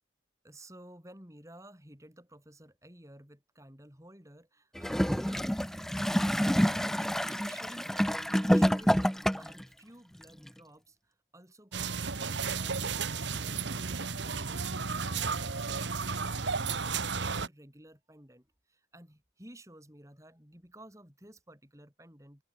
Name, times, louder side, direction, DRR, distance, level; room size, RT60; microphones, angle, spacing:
voice 1, 0.4-5.6 6.2-22.4, right 1 dB, 15° right, 5.4 m, -54 dB
Gurgling / Toilet flush, 4.8-9.6 10.5-10.6, equal, ahead, 0.5 m, -27 dB
sound 1, 11.7-17.5, right 5 dB, 70° right, 1.3 m, -33 dB
open air
head